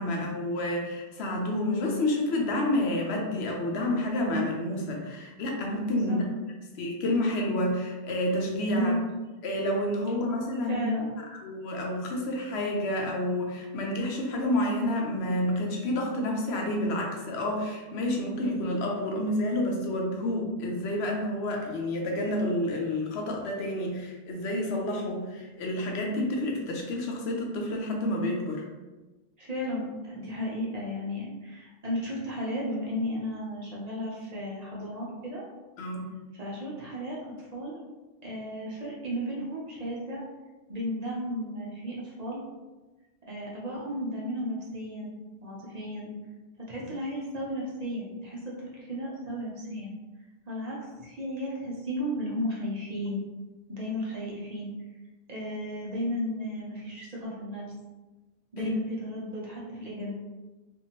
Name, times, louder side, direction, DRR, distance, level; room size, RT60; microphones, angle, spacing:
voice 1, 0.0-6.2 6.8-8.9 9.4-10.8 11.4-28.6 35.8-36.1 58.6-58.7, left 1 dB, 85° left, 1 dB, 0.9 m, -29 dB
voice 2, 8.7-9.1 10.6-11.1 29.4-35.4 36.3-37.8 38.2-40.2 40.7-42.4 43.3-45.1 45.4-46.1 46.7-49.9 50.5-53.2 53.7-54.7 55.3-57.7 58.5-60.1, equal, 45° right, -5 dB, 0.8 m, -34 dB
2.7 x 2.5 x 2.8 m, 1.2 s
omnidirectional pair, 1.1 m